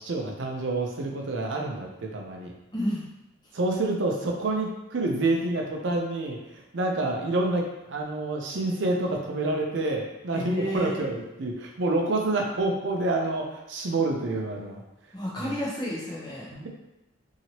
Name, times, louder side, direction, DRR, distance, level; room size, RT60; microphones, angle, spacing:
voice 1, 0.0-2.5 3.5-14.8 15.4-15.5 16.5-16.7, right 2 dB, 65° right, 0 dB, 0.5 m, -28 dB
voice 2, 2.7-3.0 10.3-11.0 15.1-16.5, equal, 20° left, -5 dB, 0.7 m, -31 dB
2.8 x 2.8 x 2.8 m, 0.94 s
head